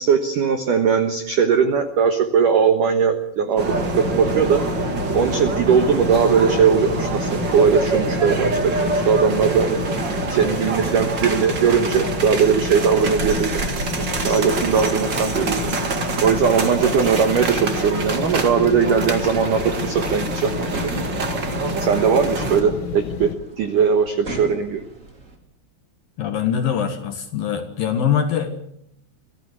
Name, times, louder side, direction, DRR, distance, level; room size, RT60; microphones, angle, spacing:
voice 1, 0.0-3.7 4.0-4.6 5.1-9.8 10.3-13.5 14.2-15.6 15.9-20.6 21.8-24.8, right 6 dB, 80° right, 8 dB, 1.8 m, -19 dB
sound 1, 3.6-22.6, right 3 dB, 65° right, 1.1 m, -26 dB
sound 2, 3.7-23.3, left 10 dB, 80° left, 4.1 m, -31 dB
sound 3, 19.6-25.4, right 2 dB, 20° right, 2.7 m, -39 dB
voice 2, 26.2-28.5, left 8 dB, 60° left, 7 dB, 2.7 m, -22 dB
25.0 x 16.0 x 8.2 m, 0.72 s
omnidirectional pair, 5.8 m